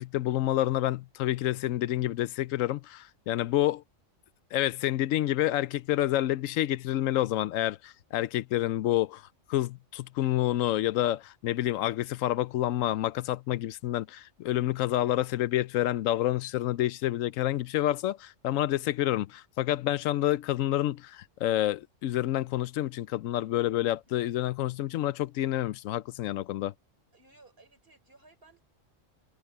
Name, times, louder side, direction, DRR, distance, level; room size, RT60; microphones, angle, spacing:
voice 1, 0.0-3.8 4.5-9.2 9.5-26.7, left 14 dB, 85° left, 1.0 m, -28 dB
voice 2, 27.1-28.6, right 2 dB, 45° right, 4.3 m, -58 dB
omnidirectional pair, 1.3 m